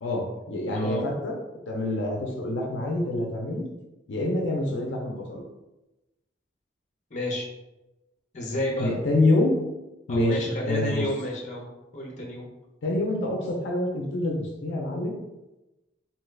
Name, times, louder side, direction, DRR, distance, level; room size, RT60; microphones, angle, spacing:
voice 1, 0.0-1.3 1.7-3.6 4.1-5.4 8.8-9.6 10.1-11.0 12.8-15.2, left 1 dB, 80° left, 0 dB, 0.5 m, -26 dB
voice 2, 0.7-1.1 7.1-7.5 8.3-8.9 10.1-11.7 11.9-12.4, left 1 dB, 40° left, -2 dB, 0.7 m, -31 dB
2.9 x 2.3 x 3.2 m, 1.0 s
head